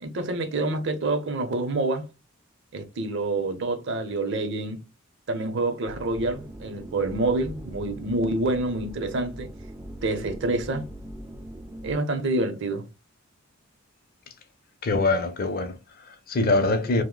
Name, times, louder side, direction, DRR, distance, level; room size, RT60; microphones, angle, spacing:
voice 1, 0.0-2.1 2.7-4.8 5.3-9.5 10.0-10.8 11.8-12.8, right 2 dB, 55° right, 0.6 m, -27 dB
sound 1, 5.9-11.9, right 1 dB, 15° right, 0.3 m, -41 dB
voice 2, 14.8-17.0, left 2 dB, 45° left, 0.5 m, -24 dB
2.7 x 2.1 x 3.7 m
head